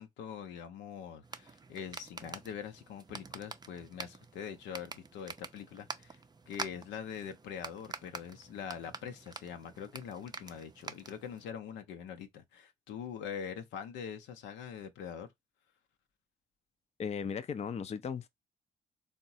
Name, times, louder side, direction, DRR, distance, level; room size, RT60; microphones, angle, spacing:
voice 1, 0.0-6.2 6.5-15.3, left 8 dB, 80° left, 0.6 m, -43 dB
sound 1, 1.2-11.5, right 4 dB, 20° right, 0.5 m, -47 dB
voice 2, 17.0-18.3, left 6 dB, 35° left, 0.4 m, -36 dB
3.6 x 2.1 x 2.7 m
supercardioid pair, 55°, 18 cm